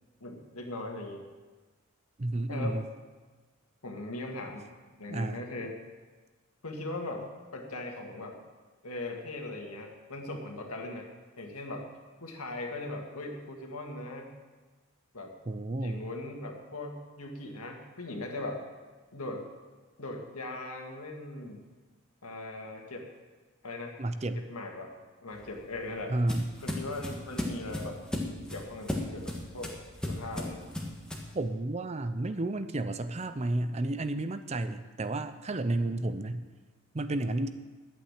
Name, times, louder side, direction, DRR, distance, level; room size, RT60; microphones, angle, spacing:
voice 1, 0.2-1.2 2.5-2.8 3.8-4.6 5.0-5.8 6.6-8.4 8.8-11.1 11.4-11.9 12.2-14.3 15.1-15.3 15.8-18.6 19.1-19.4 20.0-21.6 22.2-23.1 23.6-24.0 24.5-24.9 25.2-26.2 26.6-28.0 28.5-29.8 30.1-30.7, left 2 dB, 90° left, 2 dB, 2.0 m, -39 dB
voice 2, 2.2-2.8 5.1-5.4 15.5-16.1 24.0-24.4 26.1-26.5 31.3-36.4 36.9-37.5, right 2 dB, 30° right, 11 dB, 0.5 m, -31 dB
sound 1, 25.3-31.4, left 1 dB, 5° left, 1.5 m, -36 dB
11.5 x 8.6 x 7.3 m, 1.3 s
head